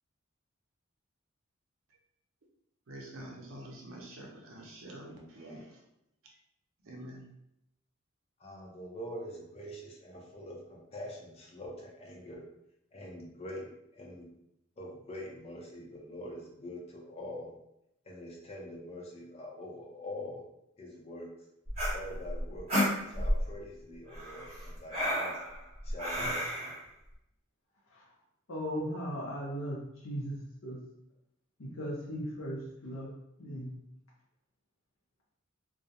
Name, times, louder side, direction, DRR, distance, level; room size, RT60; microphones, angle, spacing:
voice 1, 2.9-5.8 6.2-6.4 6.8-7.3, right 1 dB, 80° right, -1 dB, 0.6 m, -47 dB
voice 2, 8.4-12.5 12.9-14.3 14.8-17.5 18.0-20.4 20.8-21.3 21.9-22.8 23.1-25.4 25.8-26.8, left 1 dB, 30° left, -1 dB, 0.5 m, -44 dB
sound 1, 21.7-23.5 24.1-26.8, equal, 30° right, 0.8 m, -31 dB
voice 3, 28.5-30.8 31.6-33.1 33.4-33.7, equal, 70° left, -6 dB, 0.6 m, -37 dB
2.3 x 2.0 x 2.7 m, 0.81 s
head